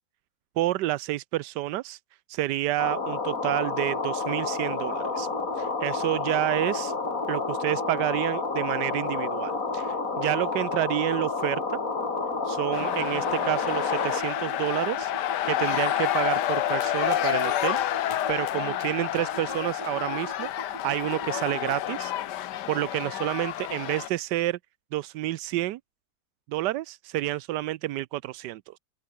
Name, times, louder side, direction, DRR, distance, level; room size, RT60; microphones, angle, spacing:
voice 1, 0.6-2.0 2.3-5.3 5.5-6.9 7.3-11.8 12.4-15.1 15.4-17.8 18.0-22.1 22.7-24.6 24.9-25.8 26.5-28.8, right 15 dB, 90° right, 1.2 m, -29 dB
sound 1, 2.8-14.2, left 4 dB, 55° left, 3.2 m, -30 dB
sound 2, 3.3-21.7, right 7 dB, 65° right, 2.0 m, -42 dB
sound 3, 12.7-24.1, left 12 dB, 85° left, 1.5 m, -29 dB
open air
omnidirectional pair, 1.8 m